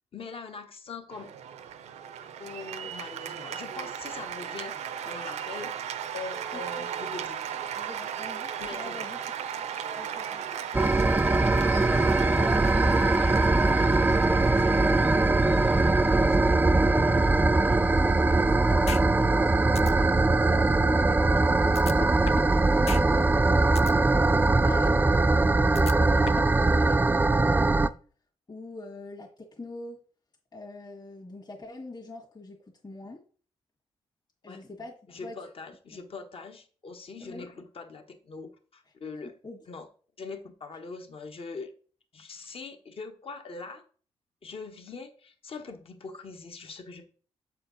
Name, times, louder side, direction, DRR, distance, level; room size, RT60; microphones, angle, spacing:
voice 1, 0.1-1.3 2.4-5.7 6.1-7.5 8.6-9.1 34.5-34.6 35.1-39.3 39.7-39.9 40.2-41.7 42.1-43.8 44.4-47.0, left 4 dB, 55° left, 6 dB, 1.2 m, -42 dB
Cheering / Applause, 1.1-20.4, right 8 dB, 85° right, 0.6 m, -37 dB
voice 2, 6.5-6.9 7.7-9.2 9.9-10.4 12.3-16.2 16.9-17.7 18.0-24.0 24.3-25.1 25.4-27.9 28.5-30.0 30.5-33.2 34.4-34.9 35.2-35.4 37.2-37.5 39.2-39.6, left 2 dB, 40° left, -2 dB, 1.7 m, -43 dB
sound 1, 10.7-27.9, right 2 dB, 15° right, 0.4 m, -22 dB
sound 2, 18.9-19.0 19.4-19.5 19.8-19.9 21.8-22.5 22.9-23.0 23.4-23.9 25.8-26.5, left 9 dB, 70° left, 0.4 m, -36 dB
7.4 x 4.4 x 3.9 m, 0.42 s
cardioid pair, 65°, 11 cm